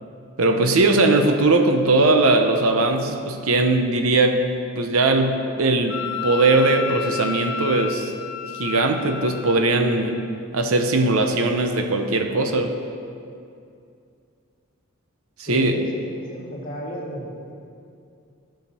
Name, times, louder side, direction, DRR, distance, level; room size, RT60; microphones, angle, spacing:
voice 1, 0.4-8.1 8.5-10.2 10.5-12.8 15.4-15.8, right 2 dB, 75° right, 5 dB, 0.8 m, -20 dB
Wind instrument woodwind instrument, 5.9-9.6, left 7 dB, 80° left, 0.5 m, -31 dB
voice 2, 15.5-17.5, equal, 40° left, -4 dB, 2.0 m, -33 dB
14.5 x 5.1 x 4.3 m, 2.4 s
head